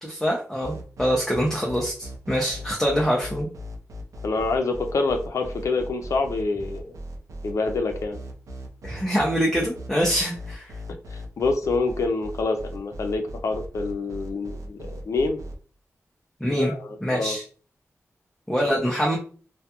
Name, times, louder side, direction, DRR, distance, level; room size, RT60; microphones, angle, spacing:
voice 1, 0.0-3.5 8.8-10.8 16.4-16.7 17.0-17.4 18.5-19.2, equal, 5° left, -2 dB, 0.5 m, -24 dB
sound 1, 0.6-15.6, equal, 85° right, 0.4 m, -38 dB
voice 2, 4.2-6.8 7.4-8.2 11.1-15.4 16.5-17.4, left 3 dB, 70° left, 5 dB, 0.5 m, -26 dB
2.3 x 2.2 x 2.8 m, 0.40 s
wide cardioid pair, 115°, 5 cm